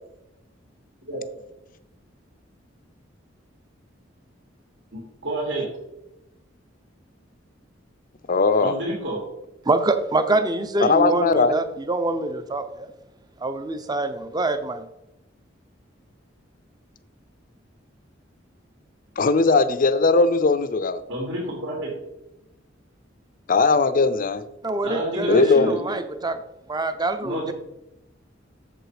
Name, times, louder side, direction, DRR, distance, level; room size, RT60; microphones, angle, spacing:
voice 1, 4.9-5.6 8.6-9.2 21.1-21.9 24.8-25.9 27.2-27.5, right 1 dB, 75° right, -3 dB, 2.7 m, -29 dB
voice 2, 8.3-8.7 10.8-11.5 19.2-21.0 23.5-24.4 25.3-25.8, left 3 dB, 45° left, 13 dB, 0.6 m, -19 dB
voice 3, 9.6-12.9 13.4-14.9 24.6-26.4 26.7-27.5, right 2 dB, 20° right, 10 dB, 0.7 m, -25 dB
7.8 x 7.0 x 4.9 m, 0.91 s
head